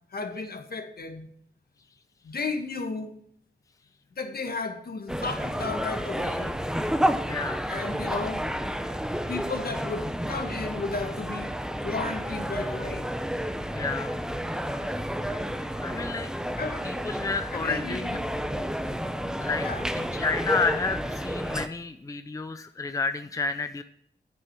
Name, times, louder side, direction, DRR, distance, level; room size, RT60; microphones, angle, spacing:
voice 1, 0.1-1.3 2.2-3.1 4.2-6.5 7.7-8.4 9.3-11.5 11.8-13.1 16.6-16.9 17.5-18.2 19.6-19.9, left 4 dB, 60° left, 6 dB, 1.5 m, -34 dB
sound 1, 5.1-21.7, equal, 5° right, 0.8 m, -31 dB
voice 2, 7.3-7.6 13.7-14.2 15.8-16.4 16.8-18.1 19.0-19.1 19.4-19.7 19.9-23.8, left 4 dB, 20° left, 9 dB, 0.5 m, -30 dB
9.6 x 8.3 x 4.6 m, 0.68 s
wide cardioid pair, 85°, 17 cm